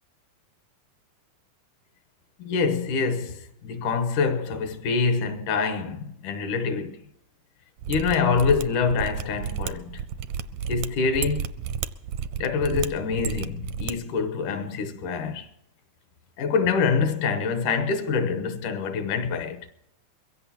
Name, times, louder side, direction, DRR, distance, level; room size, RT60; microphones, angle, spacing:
voice 1, 2.4-7.0 7.9-10.0 10.7-11.5 12.4-15.5 16.4-19.7, left 5 dB, 75° left, 2.5 m, -25 dB
Mechanisms, 7.8-13.9 14.2-14.3, right 8 dB, 80° right, 1.6 m, -32 dB
22.5 x 16.5 x 2.9 m
omnidirectional pair, 3.8 m